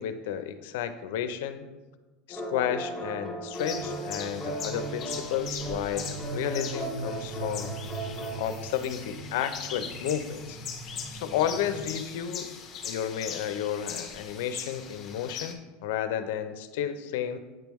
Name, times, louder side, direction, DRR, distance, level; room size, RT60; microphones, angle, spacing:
voice 1, 0.0-1.6 2.3-7.7 8.4-10.6 11.1-12.5 12.8-17.4, left 9 dB, 70° left, 10 dB, 0.5 m, -32 dB
sound 1, 2.3-8.5, right 1 dB, 5° left, 0.9 m, -37 dB
sound 2, 3.5-15.5, left 7 dB, 30° left, 0.6 m, -40 dB
sound 3, 3.7-11.9, right 4 dB, 60° right, 0.5 m, -41 dB
8.8 x 3.5 x 3.1 m, 1.2 s
supercardioid pair, 155°, 0 cm